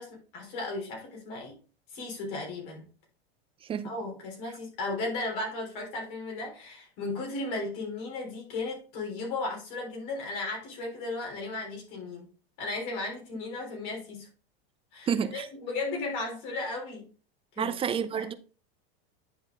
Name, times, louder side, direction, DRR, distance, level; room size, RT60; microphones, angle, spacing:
voice 1, 0.0-1.6 1.9-2.9 3.8-12.3 12.6-14.3 14.9-17.1 17.5-18.3, left 2 dB, 60° left, 3.6 m, -35 dB
voice 2, 15.1-15.5 17.6-18.3, right 7 dB, 20° right, 0.6 m, -29 dB
10.0 x 4.2 x 3.6 m
supercardioid pair, 135°, 30 cm